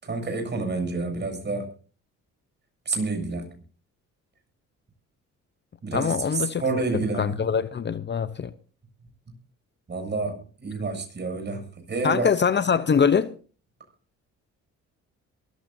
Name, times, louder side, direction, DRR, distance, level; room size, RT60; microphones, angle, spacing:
voice 1, 0.0-1.7 2.9-3.5 5.8-7.4 9.9-12.3, right 3 dB, 35° right, 7.5 m, -29 dB
voice 2, 5.9-6.6 7.2-8.5 12.0-13.3, left 6 dB, 35° left, 0.8 m, -23 dB
22.5 x 14.5 x 2.7 m
cardioid pair, 90°, 30 cm